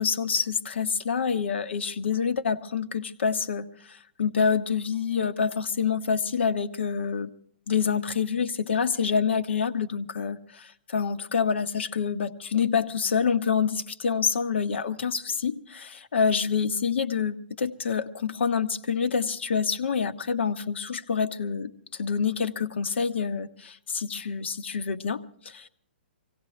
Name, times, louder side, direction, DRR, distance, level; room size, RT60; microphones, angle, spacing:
voice 1, 0.0-7.3 7.7-25.7, left 6 dB, 80° left, 10 dB, 1.1 m, -27 dB
25.0 x 17.5 x 3.3 m, 0.62 s
hypercardioid pair, 150°, 6 cm